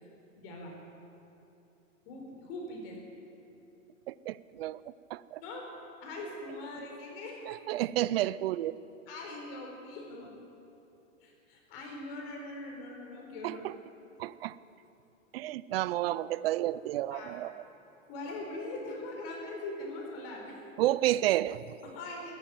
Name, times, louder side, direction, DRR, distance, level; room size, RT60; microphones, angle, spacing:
voice 1, 0.4-0.8 2.1-3.0 5.4-5.6 6.0-7.4 9.1-10.3 11.2-13.6 17.1-17.3 18.1-20.6 21.9-22.3, left 2 dB, 45° left, 0 dB, 4.2 m, -41 dB
voice 2, 4.1-5.4 7.5-8.8 13.4-13.7 14.2-14.6 15.3-17.5 20.8-21.8, right 14 dB, 50° right, 18 dB, 0.5 m, -31 dB
13.0 x 11.0 x 9.3 m, 2.8 s
hypercardioid pair, 145°, 39 cm